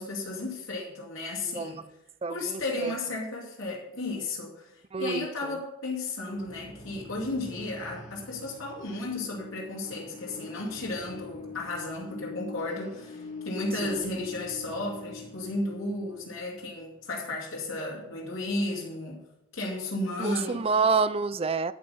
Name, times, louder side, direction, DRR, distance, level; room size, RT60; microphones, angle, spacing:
voice 1, 0.0-1.8 2.3-19.2 19.5-20.7, left 2 dB, 90° left, -4 dB, 2.6 m, -34 dB
voice 2, 1.5-1.8 2.2-3.0 4.9-5.6 13.8-14.1 20.2-21.7, right 4 dB, 30° right, 16 dB, 0.4 m, -28 dB
sound 1, 6.2-18.8, left 3 dB, 35° left, 2.3 m, -45 dB
11.0 x 8.1 x 5.6 m, 0.88 s
head